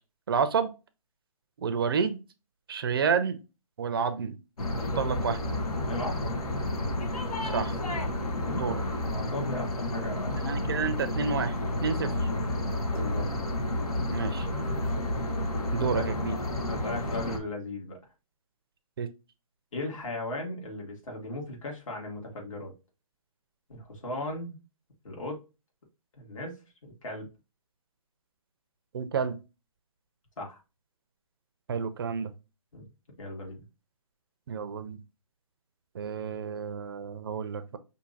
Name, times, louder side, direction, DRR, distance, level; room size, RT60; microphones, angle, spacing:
voice 1, 0.3-0.7 1.6-2.2 2.7-3.4 3.8-4.4 4.9-5.4 7.4-7.8 8.5-8.8 10.4-11.6 11.8-12.3 14.1-14.5 15.7-16.4 19.0-19.1 28.9-29.4 31.7-32.3 34.5-35.0 35.9-37.8, right 6 dB, 40° right, 10 dB, 0.4 m, -29 dB
sound 1, 4.6-17.4, left 1 dB, 80° left, 1.3 m, -30 dB
voice 2, 5.9-6.4 8.4-8.7 9.1-10.5 12.9-13.3 15.9-16.0 16.7-18.0 19.7-22.7 23.7-24.6 25.0-25.4 26.1-26.6 26.8-27.3 30.4-30.6 32.7-32.9 33.2-33.6, left 1 dB, 60° left, 0 dB, 2.2 m, -37 dB
5.6 x 2.7 x 2.6 m, 0.28 s
hypercardioid pair, 155°, 19 cm